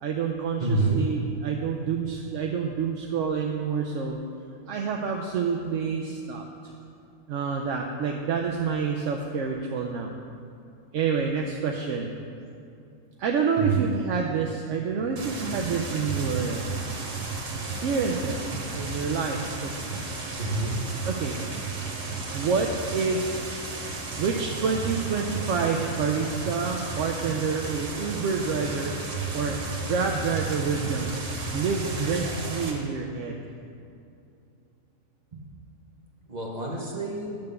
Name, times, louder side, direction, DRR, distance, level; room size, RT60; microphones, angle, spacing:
voice 1, 0.0-4.2 4.7-6.4 7.3-10.1 10.9-12.1 13.2-16.8 17.5-19.7 21.0-21.4 22.3-23.4 24.2-28.9 29.3-31.1 31.5-33.4, right 5 dB, 65° right, 1 dB, 0.8 m, -28 dB
voice 2, 0.6-1.0 13.6-13.9 20.4-20.7 35.3-35.4 36.3-37.4, right 3 dB, 30° right, -3 dB, 0.9 m, -27 dB
sound 1, 15.2-32.7, right 3 dB, 85° right, 1.7 m, -33 dB
10.5 x 3.5 x 6.7 m, 2.6 s
omnidirectional pair, 1.7 m